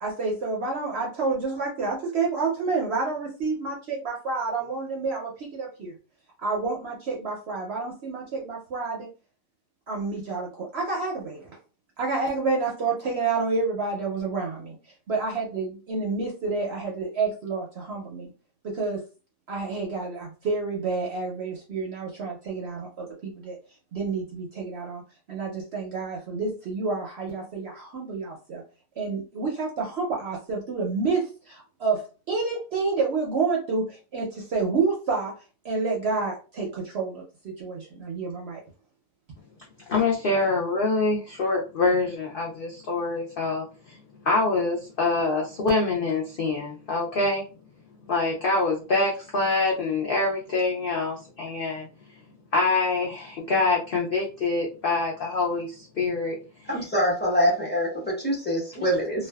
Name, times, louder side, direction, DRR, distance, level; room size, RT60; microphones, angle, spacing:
voice 1, 0.0-5.9 6.4-9.1 9.9-11.5 12.0-14.8 15.1-18.3 18.6-19.0 19.5-23.6 23.9-25.0 25.3-28.6 29.0-35.4 35.6-38.6, right 4 dB, 60° right, -1 dB, 0.7 m, -29 dB
voice 2, 39.9-44.0 44.2-47.4 48.1-51.9 52.5-56.4 56.7-56.8, left 3 dB, 80° left, -2 dB, 0.5 m, -25 dB
voice 3, 56.7-59.3, equal, 10° left, -4 dB, 0.6 m, -25 dB
2.5 x 2.2 x 2.2 m, 0.34 s
omnidirectional pair, 1.6 m